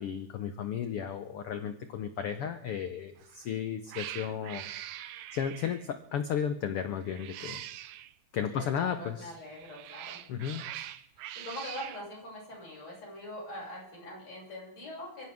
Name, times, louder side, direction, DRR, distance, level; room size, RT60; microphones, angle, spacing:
voice 1, 0.0-4.7 5.3-7.6 8.3-9.3 10.3-10.6, left 8 dB, 90° left, 9 dB, 1.2 m, -34 dB
Cat, 3.2-3.5 3.9-5.9 7.0-8.1 9.4-12.0, right 12 dB, 75° right, 1.7 m, -43 dB
voice 2, 8.5-10.2 11.2-15.3, left 1 dB, 50° left, -4 dB, 7.9 m, -43 dB
23.0 x 15.5 x 3.6 m, 0.72 s
omnidirectional pair, 3.8 m